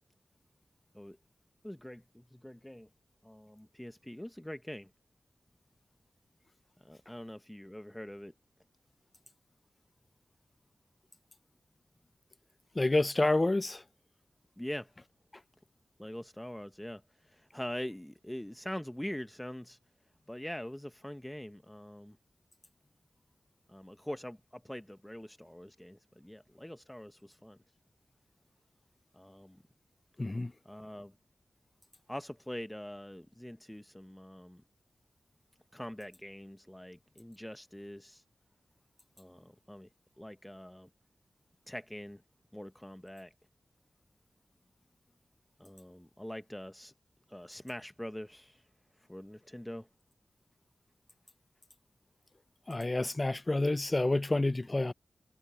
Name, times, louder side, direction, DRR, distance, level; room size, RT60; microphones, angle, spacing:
voice 1, 1.6-2.9 3.2-4.9 6.8-8.3 14.6-14.9 16.0-19.8 20.3-22.2 23.7-27.6 29.1-29.6 30.6-31.1 32.1-34.6 35.7-38.2 39.2-39.9 40.2-40.9 41.7-42.2 42.5-43.3 45.6-46.9 47.3-48.7 49.0-49.9, left 1 dB, 10° left, 0.8 m, -44 dB
voice 2, 12.8-13.8 30.2-30.5 52.7-54.9, left 2 dB, 35° left, 0.4 m, -28 dB
cardioid pair, 45°, 0 cm